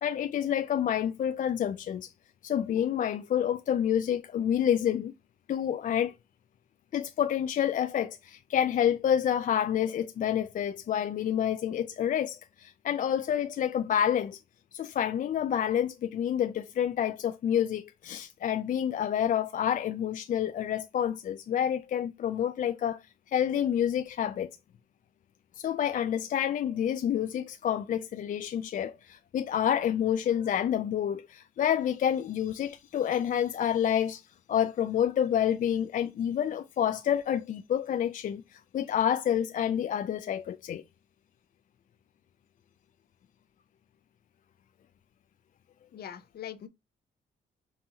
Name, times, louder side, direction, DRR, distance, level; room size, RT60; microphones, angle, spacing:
voice 1, 0.0-2.1 2.4-5.1 5.5-6.1 6.9-14.4 14.7-23.0 23.3-24.5 25.6-34.2 34.5-40.8, left 9 dB, 55° left, 0.4 m, -28 dB
voice 2, 45.9-46.7, left 10 dB, 70° left, 0.7 m, -41 dB
5.5 x 2.6 x 2.8 m
cardioid pair, 80°, 17 cm